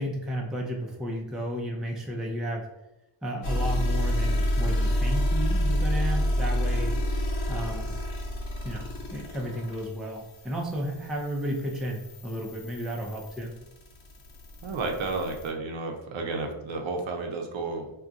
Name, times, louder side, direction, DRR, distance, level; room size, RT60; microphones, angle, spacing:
voice 1, 0.0-2.7 3.2-6.9 7.5-7.9 8.6-13.5, equal, ahead, -1 dB, 0.4 m, -33 dB
sound 1, 3.4-15.5, equal, 75° left, 1.0 m, -29 dB
voice 2, 14.6-17.9, right 3 dB, 65° right, 3 dB, 0.7 m, -32 dB
2.4 x 2.3 x 3.8 m, 0.92 s
cardioid pair, 110°, 50 cm